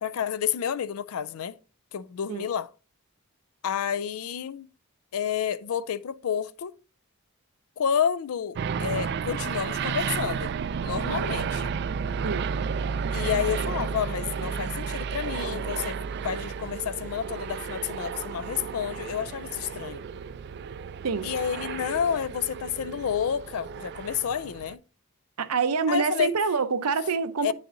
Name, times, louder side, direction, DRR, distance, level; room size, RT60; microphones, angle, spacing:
voice 1, 0.0-1.6 1.9-2.7 3.6-4.7 5.1-6.7 7.8-10.5 10.8-11.7 13.1-16.0 16.2-20.0 21.2-24.8 25.9-26.3 27.4-27.5, left 8 dB, 75° left, 0.4 m, -30 dB
sound 1, 8.6-24.8, right 6 dB, 50° right, 0.3 m, -32 dB
sound 2, 12.0-19.9, left 2 dB, 5° left, 1.0 m, -56 dB
voice 2, 25.4-27.5, right 5 dB, 90° right, 0.7 m, -26 dB
9.3 x 6.4 x 2.6 m
head